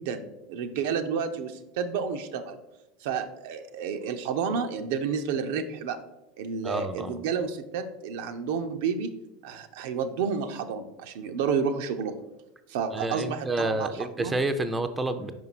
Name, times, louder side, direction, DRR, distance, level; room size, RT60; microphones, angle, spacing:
voice 1, 0.0-2.6 3.0-6.0 6.4-9.1 9.4-12.1 12.7-13.9 14.2-14.3, right 6 dB, 70° right, 7 dB, 0.5 m, -30 dB
voice 2, 6.6-7.2 12.9-15.3, right 2 dB, 15° right, 9 dB, 0.5 m, -29 dB
5.0 x 4.6 x 4.0 m, 0.95 s
hypercardioid pair, 90°, 0 cm